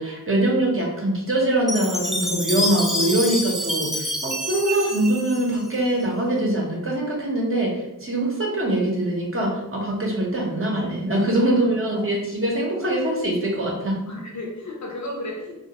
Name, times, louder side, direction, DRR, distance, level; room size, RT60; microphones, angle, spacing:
voice 1, 0.0-14.0, right 1 dB, 35° right, -2 dB, 0.7 m, -23 dB
Chime, 1.7-6.0, equal, ahead, 0.3 m, -27 dB
voice 2, 11.6-12.1 14.1-15.5, left 1 dB, 50° left, 0 dB, 0.6 m, -34 dB
2.2 x 2.2 x 2.8 m, 0.94 s
wide cardioid pair, 65°, 36 cm